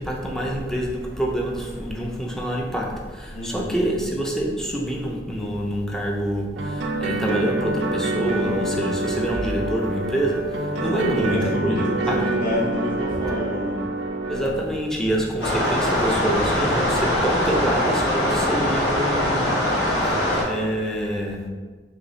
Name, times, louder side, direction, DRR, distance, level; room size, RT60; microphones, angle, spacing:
voice 1, 0.0-12.2 14.3-21.5, right 1 dB, 5° left, -2 dB, 0.3 m, -26 dB
voice 2, 3.3-3.8 10.7-13.8, left 1 dB, 50° left, -6 dB, 0.9 m, -29 dB
sound 1, 6.6-14.5, right 2 dB, 75° right, 0.3 m, -26 dB
sound 2, 15.4-20.4, left 1 dB, 75° left, 0.9 m, -22 dB
3.1 x 3.0 x 2.6 m, 1.4 s
head